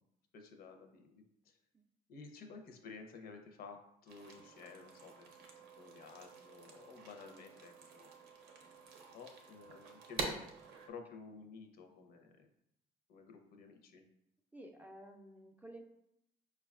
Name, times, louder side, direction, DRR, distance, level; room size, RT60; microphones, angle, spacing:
voice 1, 0.3-1.6 2.1-5.5 5.8-8.1 8.6-8.7 9.1-10.5 10.9-12.5 13.1-14.0, left 5 dB, 65° left, 5 dB, 0.6 m, -53 dB
sound 1, 4.1-10.9, right 4 dB, 80° right, 0.6 m, -48 dB
voice 2, 14.5-15.8, right 1 dB, 10° right, 2 dB, 0.3 m, -52 dB
4.8 x 2.3 x 2.3 m, 0.79 s
cardioid pair, 110°, 17 cm